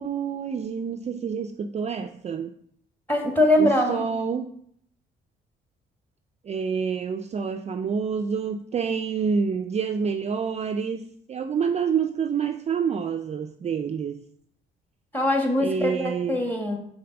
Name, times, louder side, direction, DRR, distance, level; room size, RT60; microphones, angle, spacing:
voice 1, 0.0-2.5 3.6-4.5 6.4-14.2 15.6-16.4, right 6 dB, 35° right, 0.4 m, -28 dB
voice 2, 3.1-4.0 15.1-16.8, left 1 dB, 10° left, 1.6 m, -22 dB
5.1 x 4.0 x 5.8 m
cardioid pair, 90°, 20 cm